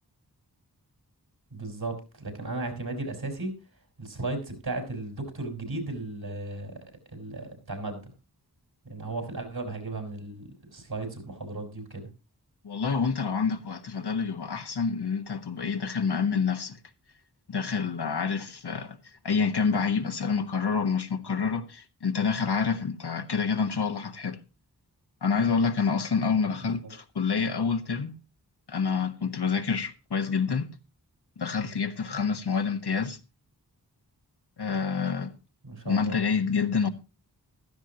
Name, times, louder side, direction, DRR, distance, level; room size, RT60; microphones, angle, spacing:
voice 1, 1.5-3.5 4.0-6.7 7.1-8.1 8.9-10.4 10.7-12.1 35.6-36.1, right 2 dB, 70° right, 5.1 m, -35 dB
voice 2, 12.6-16.8 17.5-19.0 19.2-24.4 25.2-28.1 28.7-30.7 31.4-33.2 34.6-35.3 35.8-36.9, left 5 dB, 80° left, 1.4 m, -27 dB
15.5 x 13.0 x 2.9 m
wide cardioid pair, 65°, 39 cm